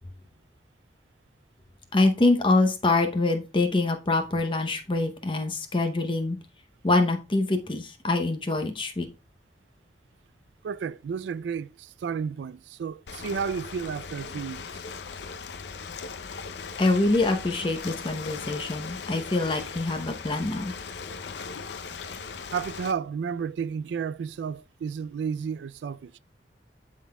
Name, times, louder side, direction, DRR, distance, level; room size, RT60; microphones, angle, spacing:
voice 1, 1.9-6.4 6.8-9.1 16.8-20.7, left 2 dB, 30° left, 0.7 m, -25 dB
voice 2, 10.6-14.8 22.5-26.2, right 6 dB, 80° right, 0.3 m, -32 dB
Ocean, 13.1-22.9, left 5 dB, 75° left, 0.5 m, -38 dB
11.0 x 3.8 x 2.2 m
head